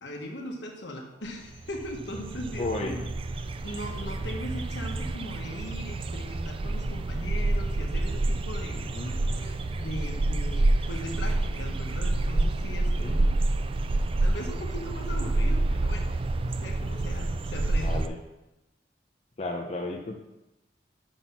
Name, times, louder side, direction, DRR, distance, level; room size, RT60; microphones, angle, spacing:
voice 1, 0.0-3.1 3.4-8.8 9.8-13.4 14.2-16.1 16.6-18.0, equal, 80° left, 1 dB, 1.4 m, -39 dB
sound 1, 1.3-1.4 1.5-18.1, right 2 dB, 30° right, 0.3 m, -28 dB
voice 2, 2.6-3.0 8.8-9.1 12.9-13.2 17.8-18.2 19.4-20.2, left 2 dB, 35° left, 1 dB, 0.6 m, -33 dB
sound 2, 7.6-10.7, equal, 65° left, 0.9 m, -49 dB
6.1 x 5.9 x 5.8 m, 0.97 s
head